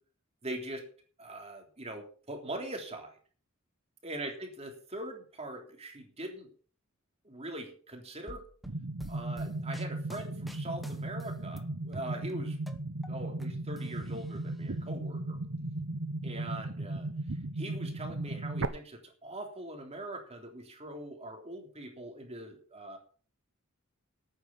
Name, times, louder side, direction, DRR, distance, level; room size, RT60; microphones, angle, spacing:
voice 1, 0.4-0.9 1.2-3.2 4.0-6.5 7.2-8.5 9.1-12.6 13.1-15.4 16.2-17.1 17.6-23.0, right 1 dB, 30° right, 2 dB, 3.4 m, -42 dB
sound 1, 8.3-11.6 11.9-13.5 13.8-14.6, equal, ahead, 1.1 m, -51 dB
sound 2, 8.7-18.7, right 2 dB, 65° right, 1.0 m, -36 dB
12.0 x 9.2 x 5.9 m, 0.42 s
head